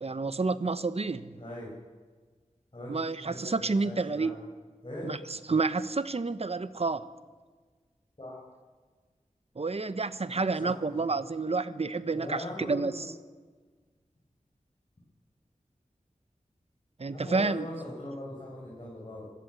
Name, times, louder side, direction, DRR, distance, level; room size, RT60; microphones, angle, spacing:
voice 1, 0.0-1.4 2.9-4.4 5.0-5.2 5.5-7.1 9.6-13.1 17.0-17.7, right 3 dB, 50° right, 1.0 m, -29 dB
voice 2, 1.4-1.7 2.7-2.9 3.2-4.4 4.8-5.1 8.2-8.4 10.6-11.1 12.1-13.1 17.1-19.3, left 1 dB, 40° left, 5.8 m, -40 dB
26.0 x 16.0 x 8.1 m
wide cardioid pair, 80°, 13 cm